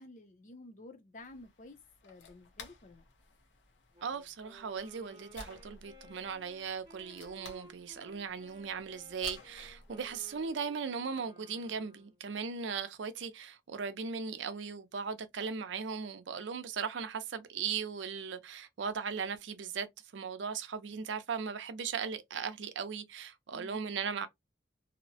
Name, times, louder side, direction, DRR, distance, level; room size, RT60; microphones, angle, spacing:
voice 1, 0.0-3.0 23.5-24.0, left 2 dB, 45° left, 0.5 m, -52 dB
sound 1, 1.2-10.5, left 4 dB, 85° left, 0.7 m, -55 dB
Wind instrument woodwind instrument, 3.9-12.2, equal, 25° right, 0.8 m, -57 dB
voice 2, 4.0-24.3, right 6 dB, 90° right, 0.5 m, -38 dB
2.8 x 2.1 x 2.6 m
head